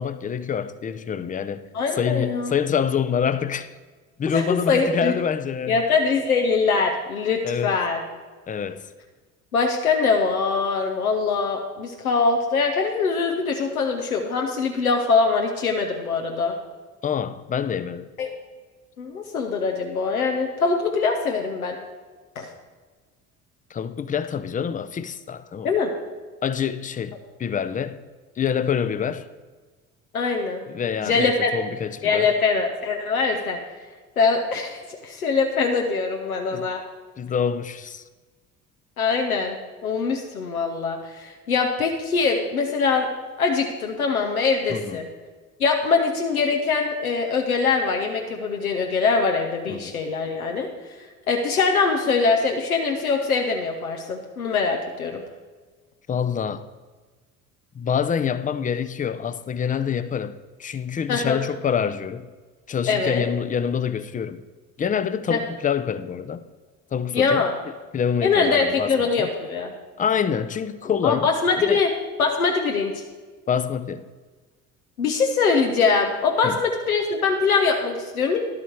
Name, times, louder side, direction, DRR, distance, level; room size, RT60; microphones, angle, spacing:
voice 1, 0.0-1.7 2.0-3.7 4.2-5.8 7.4-7.7 8.5-8.9 17.0-18.1 23.7-25.7 26.4-28.0 28.4-29.3 30.7-32.3 36.5-36.7 37.2-38.0 44.7-45.0 49.7-49.9 56.1-56.6 57.7-60.3 60.6-62.3 62.7-64.4 64.8-66.4 66.9-67.4 67.9-69.3 70.0-71.3 71.7-71.8 73.5-74.1 76.4-76.6, left 7 dB, 20° left, 0.5 m, -26 dB
voice 2, 1.7-2.5 4.3-5.1 5.7-8.0 9.5-16.5 18.2-18.3 19.0-21.8 22.4-22.5 25.6-25.9 30.1-30.6 31.0-31.5 32.0-33.6 34.2-36.8 39.0-43.1 43.4-45.1 45.6-50.7 51.3-55.2 61.1-61.4 62.9-63.3 65.3-65.4 67.1-67.5 68.2-69.7 71.0-71.9 72.2-73.0 75.0-78.4, left 4 dB, 85° left, 0.9 m, -23 dB
11.0 x 8.5 x 4.6 m
figure-of-eight pair, 55°, 43 cm